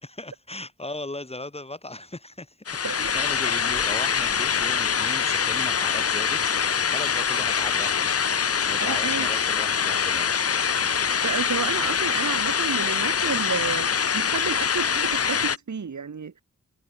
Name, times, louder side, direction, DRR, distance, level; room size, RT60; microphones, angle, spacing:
voice 1, 0.0-10.3, left 2 dB, 20° left, 3.8 m, -38 dB
sound 1, 2.7-15.6, left 6 dB, 50° left, 0.9 m, -24 dB
voice 2, 2.8-3.1 8.8-9.3 10.9-16.4, right 6 dB, 65° right, 6.5 m, -31 dB
wide cardioid pair, 130°, 31 cm